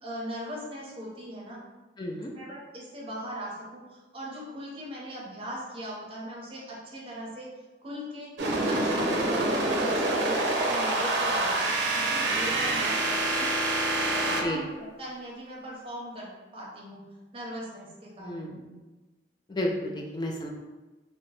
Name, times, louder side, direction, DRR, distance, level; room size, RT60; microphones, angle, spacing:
voice 1, 0.0-1.6 2.3-7.5 7.8-8.3 8.6-13.5 13.9-17.0 17.3-18.8, equal, 30° right, -4 dB, 0.6 m, -39 dB
voice 2, 2.0-2.3 14.4-14.6 18.2-18.5 19.5-20.5, left 1 dB, 25° left, 0 dB, 0.3 m, -31 dB
sound 1, 8.4-14.4, right 2 dB, 80° right, 0.5 m, -26 dB
2.7 x 2.1 x 3.1 m, 1.2 s
head